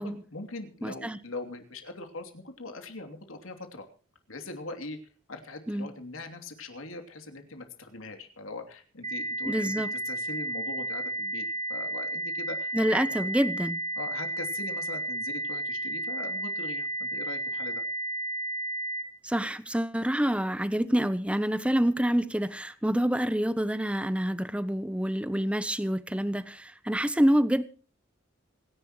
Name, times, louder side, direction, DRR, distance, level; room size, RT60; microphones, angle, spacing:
voice 1, 0.0-3.9 4.3-5.0 5.3-12.7 13.2-13.3 14.0-17.8, left 2 dB, 85° left, 3.0 m, -41 dB
voice 2, 0.8-1.2 5.7-5.9 9.5-9.9 12.7-13.8 19.2-27.6, equal, 5° right, 0.8 m, -27 dB
sound 1, 9.0-19.0, right 1 dB, 30° right, 2.0 m, -33 dB
26.5 x 11.0 x 3.1 m
head